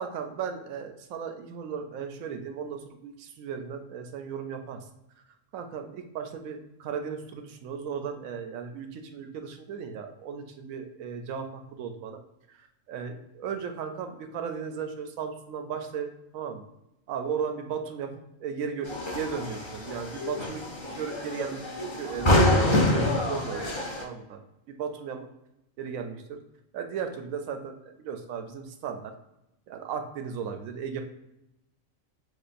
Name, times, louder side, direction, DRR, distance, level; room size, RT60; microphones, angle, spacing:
voice 1, 0.0-4.8 5.5-12.2 12.5-16.6 17.1-18.1 18.4-20.7 21.0-23.7 24.0-24.4 24.7-25.3 25.8-26.4 26.7-29.1 29.7-31.0, right 6 dB, 85° right, 6 dB, 1.0 m, -36 dB
sound 1, 18.8-24.0, left 1 dB, 35° left, 0.5 m, -26 dB
6.2 x 2.4 x 2.5 m, 0.88 s
omnidirectional pair, 1.4 m